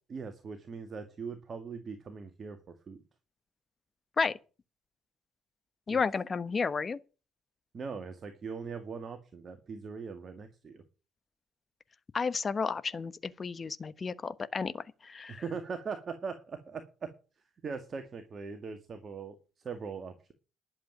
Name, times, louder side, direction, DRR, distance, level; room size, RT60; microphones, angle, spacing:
voice 1, 0.1-3.0 5.9-6.0 7.7-10.8 15.3-17.1 17.6-20.3, right 5 dB, 40° right, 2.0 m, -40 dB
voice 2, 5.9-7.0 12.1-15.4, left 5 dB, 35° left, 1.1 m, -32 dB
11.5 x 7.8 x 8.9 m
hypercardioid pair, 50°, 0 cm